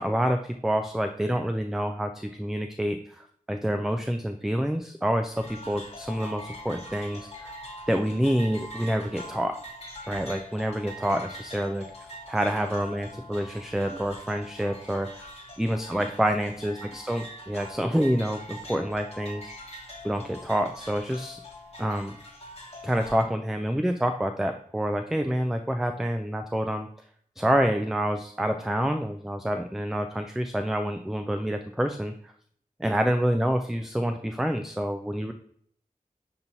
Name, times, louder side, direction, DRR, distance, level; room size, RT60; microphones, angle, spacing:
voice 1, 0.0-7.5 7.9-9.5 10.1-11.9 12.3-15.3 15.6-19.4 20.0-21.4 21.8-22.1 22.8-26.9 27.4-32.3 32.8-35.3, equal, 5° right, 6 dB, 0.3 m, -27 dB
sound 1, 5.4-23.2, equal, 45° left, 1.1 m, -43 dB
6.8 x 2.9 x 2.6 m, 0.63 s
wide cardioid pair, 70°, 15 cm